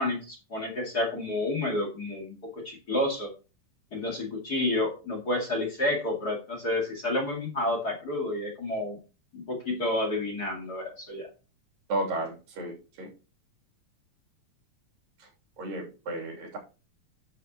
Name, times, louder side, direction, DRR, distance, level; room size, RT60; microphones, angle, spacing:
voice 1, 0.0-3.3 3.9-9.0 9.3-11.3, left 1 dB, 35° left, 0 dB, 2.2 m, -30 dB
voice 2, 11.9-13.1 15.2-15.3 15.6-16.6, right 2 dB, 85° right, 0 dB, 4.8 m, -33 dB
11.5 x 7.0 x 3.0 m, 0.32 s
omnidirectional pair, 3.9 m